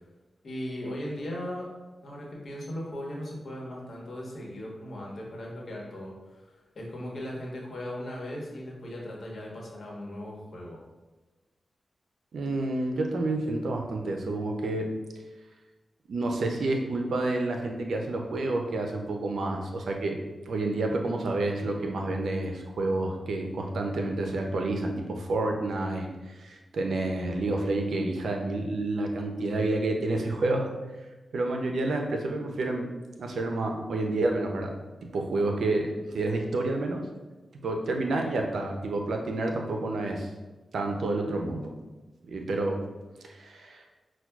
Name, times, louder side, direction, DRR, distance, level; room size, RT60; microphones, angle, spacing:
voice 1, 0.4-1.7 2.0-10.8, left 1 dB, 65° left, -3 dB, 1.1 m, -38 dB
voice 2, 12.3-14.9 16.1-20.2 20.5-30.7 31.3-32.9 33.2-34.7 35.1-37.0 37.5-40.3 40.7-41.7 42.2-42.8 43.2-43.8, right 2 dB, 85° right, 2 dB, 0.5 m, -29 dB
5.7 x 2.2 x 2.3 m, 1.2 s
cardioid pair, 55°, 0 cm